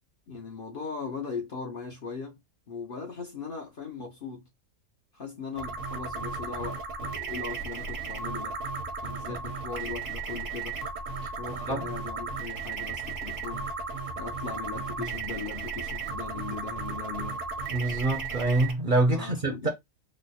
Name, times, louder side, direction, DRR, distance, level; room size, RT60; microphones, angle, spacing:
voice 1, 0.3-2.4 2.7-4.5 5.1-8.6 9.0-10.8 11.4-13.6 14.2-17.4 19.1-19.7, left 4 dB, 50° left, 0.8 m, -38 dB
sound 1, 5.6-18.7, right 4 dB, 65° right, 1.2 m, -35 dB
voice 2, 17.7-19.7, right 2 dB, 45° right, 0.7 m, -26 dB
3.1 x 2.0 x 4.0 m
omnidirectional pair, 1.5 m